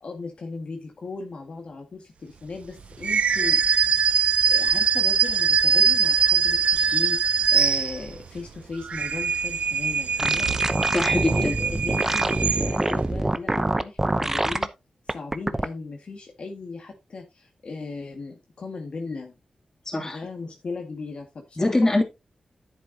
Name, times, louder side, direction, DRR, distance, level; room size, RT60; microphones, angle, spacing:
voice 1, 0.0-3.6 3.9-10.6 11.3-14.7 15.1-19.4 20.0-22.0, left 3 dB, 60° left, 1.9 m, -37 dB
sound 1, 3.0-8.3 8.8-13.0, right 6 dB, 75° right, 0.5 m, -22 dB
sound 2, 10.2-14.7 15.1-15.7, right 2 dB, 20° right, 0.8 m, -25 dB
voice 2, 10.9-11.6 19.9-20.2 21.6-22.0, left 2 dB, 25° left, 2.9 m, -23 dB
10.5 x 8.2 x 2.9 m
wide cardioid pair, 85°, 2 cm